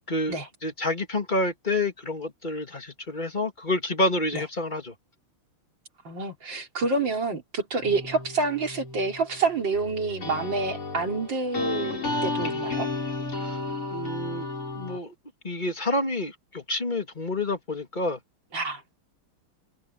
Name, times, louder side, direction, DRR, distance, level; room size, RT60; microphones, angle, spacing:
voice 1, 0.1-4.9 13.4-13.6 13.9-14.5 14.7-15.1 15.4-18.2, left 1 dB, 20° left, 2.5 m, -28 dB
voice 2, 6.0-12.9 18.5-18.9, right 3 dB, 55° right, 4.4 m, -28 dB
sound 1, 7.8-15.0, left 3 dB, 85° left, 8.4 m, -33 dB
open air
omnidirectional pair, 2.4 m